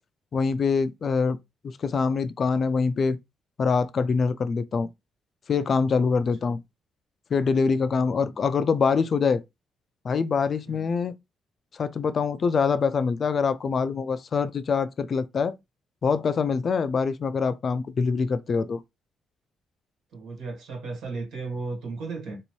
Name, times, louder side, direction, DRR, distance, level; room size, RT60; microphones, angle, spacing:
voice 1, 0.3-1.4 1.8-3.2 3.6-4.9 5.5-6.6 7.3-9.4 10.0-11.1 11.7-15.5 16.0-18.8, left 5 dB, 45° left, 0.3 m, -24 dB
voice 2, 7.9-8.4 10.7-10.9 20.1-22.4, right 3 dB, 80° right, 1.6 m, -35 dB
3.0 x 2.8 x 3.0 m
cardioid pair, 110°, 0 cm